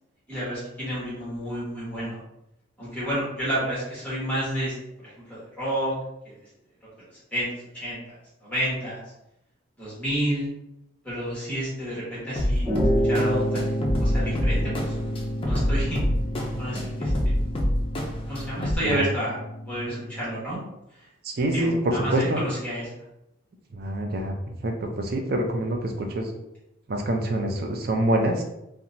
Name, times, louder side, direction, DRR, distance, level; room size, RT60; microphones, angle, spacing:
voice 1, 0.3-2.2 2.8-4.7 5.0-6.0 6.2-6.4 7.3-7.5 7.7-8.2 8.4-9.0 9.8-10.5 11.0-12.7 13.0-13.6 14.0-14.9 15.4-16.0 16.6-17.3 18.3-19.4 19.7-20.6 21.5-22.9, equal, 5° left, -9 dB, 1.2 m, -30 dB
sound 1, 12.4-18.8, left 1 dB, 30° left, 0.4 m, -26 dB
sound 2, 12.6-20.3, equal, 20° right, 1.2 m, -30 dB
voice 2, 21.2-22.4 23.7-24.3 24.6-26.3 26.9-28.4, right 1 dB, 50° right, 3 dB, 0.4 m, -26 dB
2.9 x 2.2 x 2.5 m, 0.84 s
head